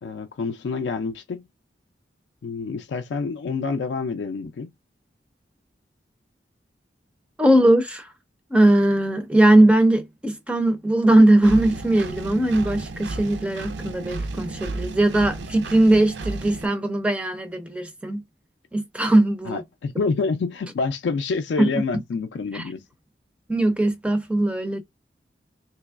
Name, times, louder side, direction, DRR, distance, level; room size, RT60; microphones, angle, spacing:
voice 1, 0.0-1.4 2.4-4.7 19.5-22.8, left 4 dB, 75° left, 0.3 m, -27 dB
voice 2, 7.4-8.1 8.5-18.2 18.7-19.6 21.6-21.7 22.5-22.6 23.5-24.8, right 1 dB, 5° right, 0.4 m, -19 dB
Engine, 11.4-16.7, right 2 dB, 75° right, 0.4 m, -33 dB
3.3 x 3.0 x 2.3 m
head